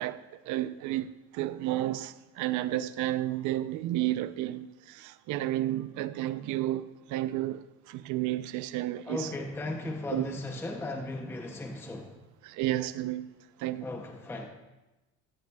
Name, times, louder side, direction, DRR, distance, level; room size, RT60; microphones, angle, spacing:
voice 1, 0.0-9.3 10.1-10.4 12.4-13.3 13.6-13.9, right 14 dB, 65° right, 0.5 m, -32 dB
voice 2, 9.1-12.2 13.8-14.5, left 2 dB, 5° left, 0.6 m, -36 dB
13.5 x 10.5 x 2.3 m
cardioid pair, 155°, 32 cm